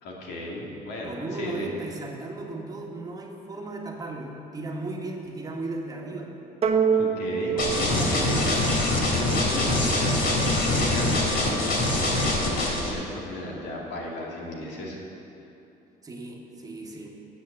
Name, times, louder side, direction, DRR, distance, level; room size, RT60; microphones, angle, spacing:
voice 1, 0.0-1.7 6.9-8.7 9.2-10.4 10.7-15.0, left 1 dB, 85° left, -2 dB, 2.4 m, -35 dB
voice 2, 1.0-6.3 7.5-8.8 16.0-17.2, right 2 dB, 20° right, 0 dB, 1.5 m, -36 dB
sound 1, 6.6-9.2, right 6 dB, 35° right, 1.0 m, -26 dB
sound 2, 7.6-12.9, left 2 dB, 60° left, 2.7 m, -24 dB
9.5 x 8.2 x 8.0 m, 2.8 s
cardioid pair, 110°, 17 cm